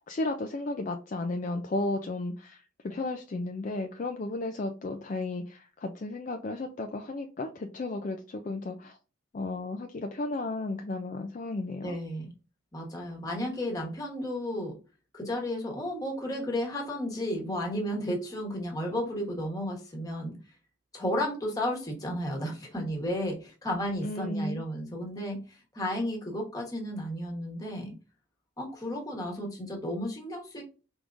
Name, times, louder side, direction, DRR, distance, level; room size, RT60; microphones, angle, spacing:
voice 1, 0.1-9.0 9.3-12.0 24.0-24.6, left 2 dB, 40° left, 4 dB, 0.4 m, -34 dB
voice 2, 11.8-12.3 12.7-14.8 15.1-20.4 20.9-27.9 28.6-30.6, left 1 dB, 20° left, 0 dB, 1.2 m, -33 dB
4.6 x 3.6 x 2.6 m, 0.33 s
head